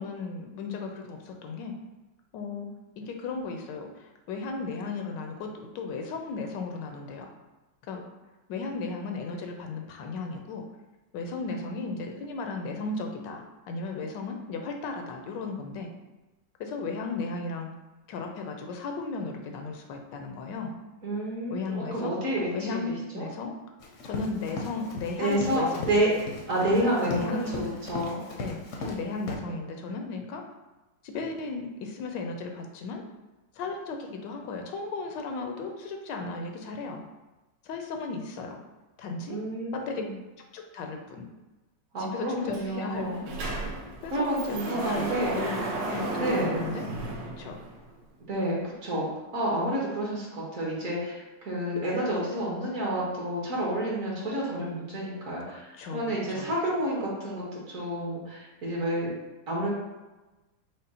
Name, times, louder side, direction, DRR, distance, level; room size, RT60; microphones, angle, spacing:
voice 1, 0.0-1.7 2.3-2.7 3.0-7.3 7.9-8.0 8.5-10.6 11.1-15.9 16.6-17.7 18.1-20.7 21.5-22.2 22.5-23.6 24.0-25.9 27.0-27.6 28.4-30.4 31.0-33.0 33.5-37.0 37.6-38.6 39.0-39.4 39.7-40.0 40.5-41.3 42.0-43.4 44.0-45.0 45.3-46.9 47.4-47.6 55.5-56.5, left 4 dB, 80° left, 3 dB, 1.2 m, -35 dB
voice 2, 21.0-23.3 25.2-26.1 26.5-28.2 39.3-40.1 41.9-43.2 44.1-45.4 46.2-46.5 48.2-59.1 59.5-59.7, right 1 dB, 50° right, -5 dB, 1.4 m, -29 dB
Run, 23.8-29.0 29.3-29.4, left 2 dB, 60° left, 0.8 m, -37 dB
Sliding door, 42.5-42.6 42.9-47.9, right 2 dB, 75° right, 1.4 m, -34 dB
5.1 x 2.1 x 4.1 m, 1.1 s
omnidirectional pair, 2.0 m